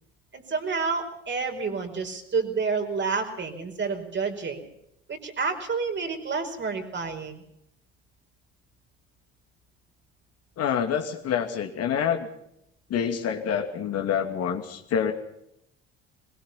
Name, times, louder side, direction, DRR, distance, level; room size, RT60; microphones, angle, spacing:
voice 1, 0.3-4.6 5.1-7.4, right 4 dB, 35° right, 4 dB, 4.8 m, -29 dB
voice 2, 10.6-12.3 12.9-15.1, left 8 dB, 50° left, 5 dB, 2.6 m, -27 dB
22.0 x 21.5 x 5.8 m, 0.78 s
figure-of-eight pair, 60°, 32 cm